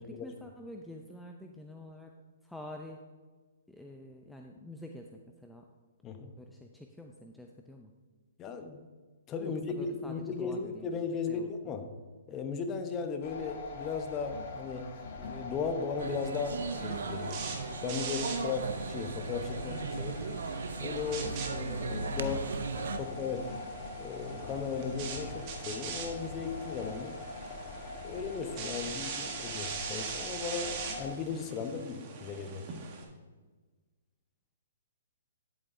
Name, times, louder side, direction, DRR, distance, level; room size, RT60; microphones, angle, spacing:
voice 1, 0.0-2.1 2.4-3.0 3.7-5.6 6.4-7.9 9.4-10.9 11.3-11.5 22.2-22.7, left 1 dB, 5° left, 2 dB, 0.5 m, -47 dB
voice 2, 8.4-8.9 9.3-11.8 12.3-14.9 15.2-17.4 17.8-20.2 20.8-22.4 23.0-23.5 24.0-27.2 28.0-32.6, left 5 dB, 25° left, 6 dB, 0.9 m, -36 dB
sound 1, 13.2-31.1, left 3 dB, 50° left, 1.5 m, -43 dB
sound 2, 16.0-23.0, right 4 dB, 65° right, 0.6 m, -37 dB
sound 3, 16.6-33.0, right 5 dB, 35° right, 1.3 m, -43 dB
10.5 x 8.2 x 2.7 m, 1.4 s
figure-of-eight pair, 125°, 0 cm